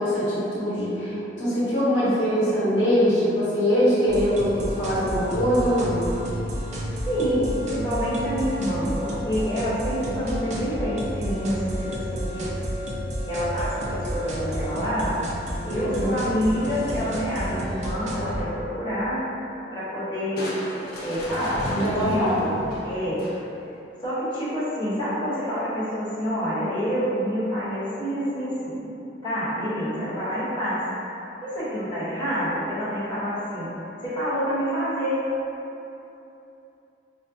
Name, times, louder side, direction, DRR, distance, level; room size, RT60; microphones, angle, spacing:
voice 1, 0.0-6.0 15.7-16.2 21.7-22.4, equal, 70° left, -11 dB, 1.1 m, -23 dB
sound 1, 4.1-18.4, equal, 40° right, 0.4 m, -31 dB
voice 2, 7.0-12.5 13.3-15.1 15.6-19.2 19.7-20.5 21.0-22.5 22.8-23.3 24.0-28.8 29.2-30.8 31.4-33.7 34.0-35.2, equal, 25° left, -13 dB, 0.9 m, -27 dB
Crushing, 20.4-23.7, left 1 dB, 50° left, 0.4 m, -35 dB
4.5 x 2.1 x 2.5 m, 2.9 s
head